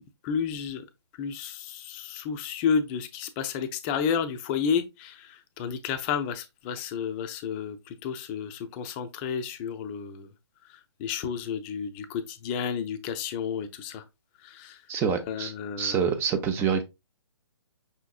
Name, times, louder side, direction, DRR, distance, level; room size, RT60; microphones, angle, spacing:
voice 1, 0.2-0.8 1.2-10.3 11.0-14.0 14.4-14.8 15.3-16.0, left 7 dB, 25° left, 0.6 m, -31 dB
voice 2, 14.9-15.5 15.8-16.8, right 7 dB, 15° right, 0.6 m, -26 dB
5.7 x 3.5 x 2.4 m
hypercardioid pair, 140°, 15 cm